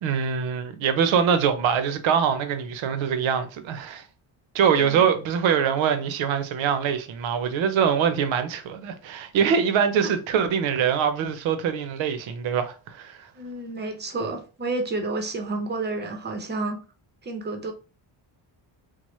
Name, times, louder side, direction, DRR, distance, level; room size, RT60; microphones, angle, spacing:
voice 1, 0.0-4.0 4.5-13.2, right 7 dB, 75° right, 0.7 m, -23 dB
voice 2, 13.3-16.8 17.2-17.7, right 2 dB, 25° right, 0.5 m, -30 dB
3.0 x 2.0 x 3.0 m
cardioid pair, 140°, 47 cm